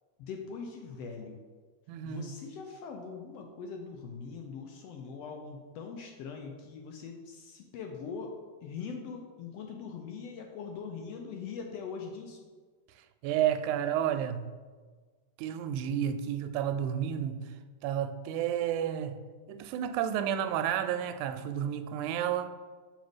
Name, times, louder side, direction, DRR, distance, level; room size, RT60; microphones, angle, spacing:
voice 1, 0.2-1.4 2.0-8.3 8.6-12.4, left 5 dB, 75° left, 1.6 m, -42 dB
voice 2, 1.9-2.3 13.2-14.5 15.4-17.4 17.8-19.2 19.5-22.5, right 10 dB, 90° right, 2.0 m, -31 dB
6.0 x 5.5 x 5.0 m
omnidirectional pair, 3.4 m